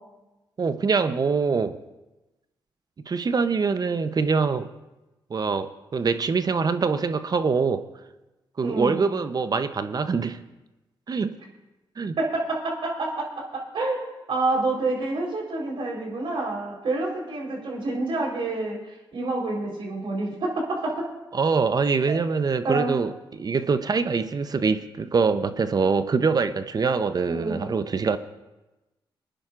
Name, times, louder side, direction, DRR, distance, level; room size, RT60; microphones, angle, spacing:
voice 1, 0.6-1.8 3.1-4.7 5.3-7.8 8.6-10.4 11.1-11.4 12.0-12.2 21.3-28.2, right 5 dB, 45° right, 11 dB, 0.7 m, -24 dB
voice 2, 8.6-9.1 12.2-21.1 22.1-22.2 22.6-22.9 27.3-27.7, right 2 dB, 65° right, -2 dB, 3.9 m, -28 dB
24.0 x 10.0 x 2.5 m, 1.0 s
cardioid pair, 60°, 9 cm